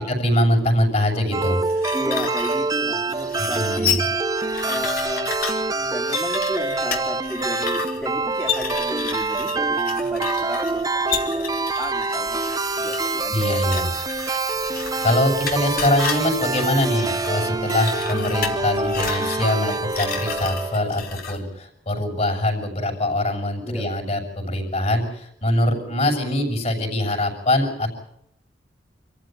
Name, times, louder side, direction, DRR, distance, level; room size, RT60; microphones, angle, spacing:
voice 1, 0.0-1.6 3.4-4.0 13.3-13.9 15.0-27.9, left 1 dB, 40° left, 2 dB, 7.0 m, -23 dB
sound 1, 1.3-21.2, right 3 dB, 20° right, 0.8 m, -26 dB
sound 2, 1.7-21.4, left 6 dB, 55° left, 3.7 m, -32 dB
voice 2, 1.9-4.0 4.6-5.3 5.7-10.8 11.1-12.5 12.8-13.8 23.6-23.8, equal, 5° left, -3 dB, 3.0 m, -33 dB
sound 3, 12.7-19.2, left 2 dB, 90° left, 4.3 m, -42 dB
27.0 x 15.0 x 9.2 m, 0.77 s
head